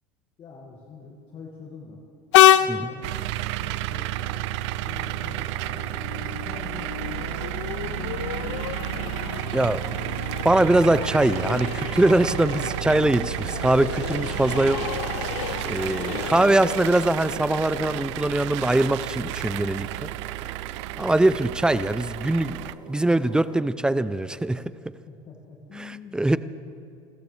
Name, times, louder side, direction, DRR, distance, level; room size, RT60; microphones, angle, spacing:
voice 1, 0.4-2.0 2.6-4.4 4.9-8.9 25.1-26.4, left 4 dB, 35° left, -2 dB, 2.0 m, -45 dB
Train, 2.3-19.6, left 12 dB, 90° left, 0.5 m, -28 dB
sound 1, 3.0-22.7, right 17 dB, 75° right, 0.4 m, -32 dB
sound 2, 5.0-23.6, right 3 dB, 25° right, 2.0 m, -47 dB
voice 2, 9.5-9.8 10.4-14.8 15.6-20.1 21.0-24.6 25.8-26.4, right 1 dB, 5° right, 15 dB, 0.5 m, -22 dB
29.5 x 14.0 x 3.4 m, 2.7 s
supercardioid pair, 110°, 15 cm